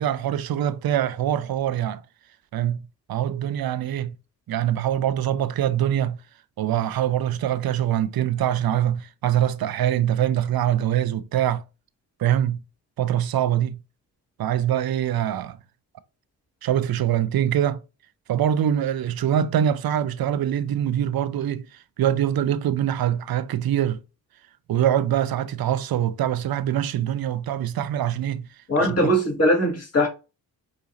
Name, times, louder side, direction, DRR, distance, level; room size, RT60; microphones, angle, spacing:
voice 1, 0.0-2.0 2.5-2.8 3.1-4.1 4.5-6.2 6.6-11.6 12.2-12.6 13.0-13.8 14.4-15.6 16.6-17.8 18.3-21.7 22.0-24.0 24.7-28.5 28.8-29.1, right 10 dB, 55° right, 0.6 m, -24 dB
voice 2, 28.7-30.1, equal, 35° left, 1.8 m, -20 dB
5.0 x 2.8 x 2.6 m
supercardioid pair, 45°, 44 cm